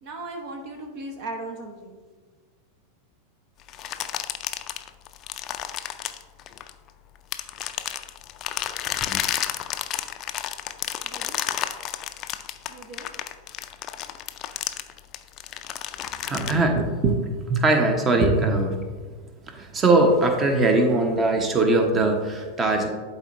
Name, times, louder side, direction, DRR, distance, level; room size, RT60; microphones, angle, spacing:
voice 1, 0.0-2.0 11.0-11.4 12.7-13.1, right 2 dB, 45° right, 3 dB, 0.9 m, -37 dB
sound 1, 3.7-6.9 7.3-16.5, left 11 dB, 35° left, 0.4 m, -31 dB
voice 2, 16.0-18.8 19.5-22.9, right 2 dB, 20° right, 4 dB, 1.0 m, -21 dB
11.0 x 4.3 x 2.6 m, 1.4 s
figure-of-eight pair, 90°, 0 cm